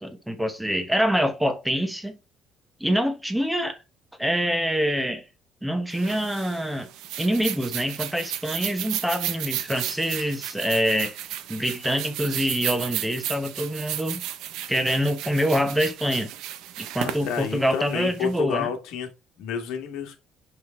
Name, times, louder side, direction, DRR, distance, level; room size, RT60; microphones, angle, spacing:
voice 1, 0.0-2.2 2.8-3.8 4.2-5.2 5.6-6.9 7.2-11.2 11.5-14.2 14.7-16.3 16.8-18.7, equal, 5° right, 1.0 m, -25 dB
scratch their heads, 5.9-18.4, right 12 dB, 90° right, 1.0 m, -34 dB
voice 2, 17.0-19.1 19.4-20.2, left 7 dB, 90° left, 1.8 m, -30 dB
6.3 x 5.1 x 3.5 m
cardioid pair, 175°, 0 cm